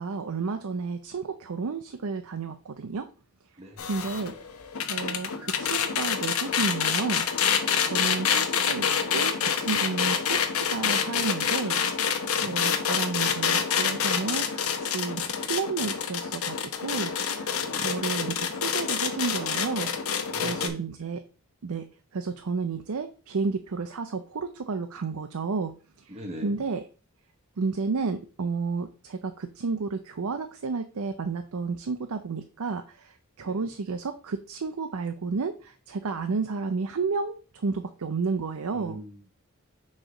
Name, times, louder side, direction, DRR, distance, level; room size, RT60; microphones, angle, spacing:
voice 1, 0.0-3.1 3.9-4.3 4.9-7.3 7.8-8.9 9.1-11.8 12.4-21.2 21.6-21.9 22.1-25.7 26.0-26.1 26.4-26.8 27.6-33.1 33.4-39.0, right 4 dB, 90° right, 7 dB, 0.6 m, -31 dB
voice 2, 3.6-3.9 7.8-8.2 12.2-12.5 17.6-17.9 20.3-20.8 26.1-26.6 33.4-33.7 38.7-39.3, equal, 30° right, 2 dB, 0.9 m, -41 dB
sound 1, 3.8-20.7, left 7 dB, 85° left, 0.8 m, -27 dB
6.3 x 3.2 x 4.8 m, 0.36 s
head